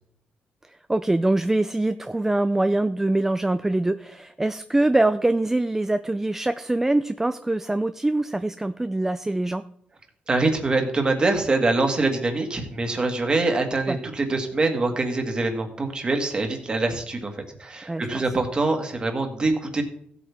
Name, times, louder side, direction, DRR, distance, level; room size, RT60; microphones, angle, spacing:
voice 1, 0.9-9.6 13.9-14.0 17.9-18.2, right 2 dB, 10° right, 11 dB, 0.4 m, -23 dB
voice 2, 10.3-17.3 17.6-19.8, right 3 dB, 25° right, 4 dB, 1.8 m, -24 dB
15.5 x 8.4 x 3.5 m, 0.66 s
cardioid pair, 125°, 3 cm